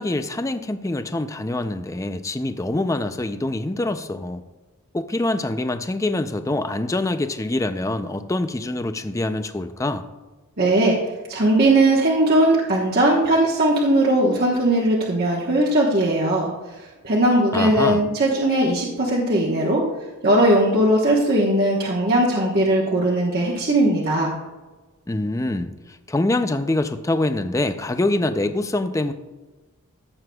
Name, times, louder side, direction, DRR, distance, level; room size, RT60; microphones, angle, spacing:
voice 1, 0.0-4.4 4.9-10.0 17.5-18.0 25.1-25.7 26.1-29.1, left 2 dB, 15° left, 9 dB, 0.4 m, -25 dB
voice 2, 10.6-11.0 11.3-16.5 17.0-19.8 20.2-24.3, right 1 dB, 45° right, -4 dB, 1.1 m, -19 dB
14.5 x 7.7 x 2.3 m, 1.2 s
head